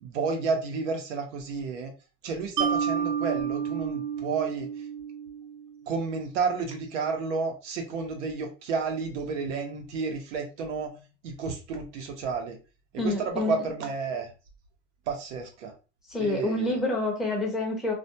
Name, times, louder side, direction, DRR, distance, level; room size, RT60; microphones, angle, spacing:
voice 1, 0.0-1.9 2.2-4.7 5.9-10.9 11.2-12.6 13.0-14.3 15.1-15.7 16.2-16.8, right 5 dB, 90° right, 3 dB, 0.9 m, -31 dB
Mallet percussion, 2.6-5.8, right 7 dB, 55° right, 0.7 m, -30 dB
voice 2, 13.0-13.7 16.1-17.9, left 2 dB, ahead, -1 dB, 0.6 m, -28 dB
2.4 x 2.2 x 2.7 m, 0.32 s
supercardioid pair, 120°, 34 cm